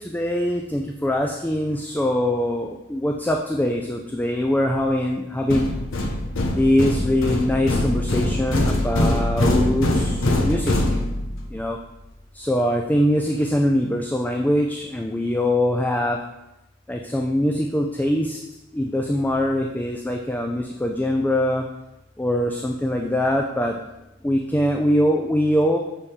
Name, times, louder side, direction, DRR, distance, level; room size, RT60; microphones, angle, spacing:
voice 1, 0.1-5.7 6.6-10.1 10.4-10.7 11.5-11.8 12.4-16.2 16.9-18.4 18.7-21.6 22.2-23.8 24.2-25.8, left 1 dB, 10° left, 1 dB, 0.3 m, -22 dB
sound 1, 5.5-11.5, left 1 dB, 75° left, 0.8 m, -23 dB
7.1 x 3.6 x 4.1 m, 0.94 s
head